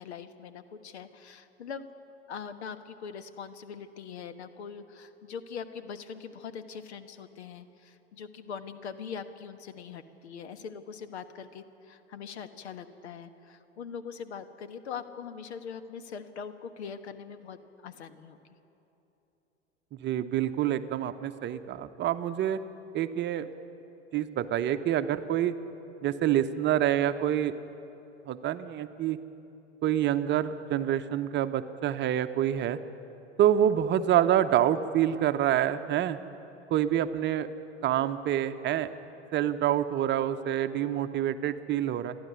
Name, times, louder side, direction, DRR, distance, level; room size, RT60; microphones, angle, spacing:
voice 1, 0.0-1.9 2.3-18.4, left 6 dB, 70° left, 10 dB, 1.3 m, -42 dB
voice 2, 20.0-22.6 22.9-23.5 24.1-25.5 26.0-27.5 28.3-29.2 29.8-32.8 33.4-36.2 36.7-37.5 37.8-38.9 39.3-42.2, right 11 dB, 30° right, 11 dB, 0.9 m, -27 dB
28.0 x 11.0 x 9.5 m, 3.0 s
figure-of-eight pair, 85°, 34 cm